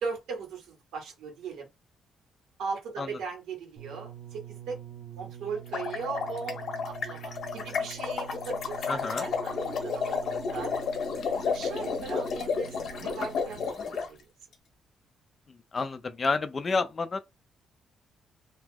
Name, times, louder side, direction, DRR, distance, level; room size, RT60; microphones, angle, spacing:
voice 1, 0.0-1.7 2.6-4.8 5.1-10.7 11.5-13.6 13.9-14.3, right 5 dB, 80° right, 1.4 m, -38 dB
sound 1, 3.8-13.9 14.7-14.8, right 8 dB, 35° right, 0.7 m, -45 dB
sound 2, 5.6-14.1, left 5 dB, 50° left, 0.8 m, -32 dB
voice 2, 8.9-9.3 15.7-17.2, left 4 dB, 25° left, 0.4 m, -29 dB
2.8 x 2.0 x 3.4 m
cardioid pair, 170°, 0 cm